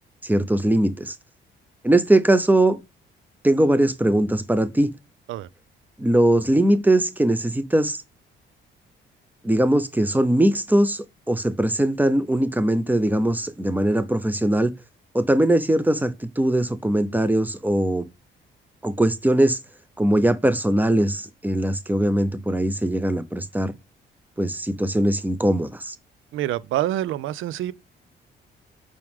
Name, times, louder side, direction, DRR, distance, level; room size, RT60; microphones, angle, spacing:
voice 1, 0.2-1.1 1.8-2.8 3.4-4.9 6.0-8.0 9.4-14.7 15.1-18.1 18.8-19.6 20.0-23.7 24.4-26.0, right 1 dB, 10° right, 0.8 m, -21 dB
voice 2, 26.3-27.7, right 13 dB, 85° right, 0.5 m, -26 dB
6.1 x 4.6 x 3.5 m
cardioid pair, 90°, 20 cm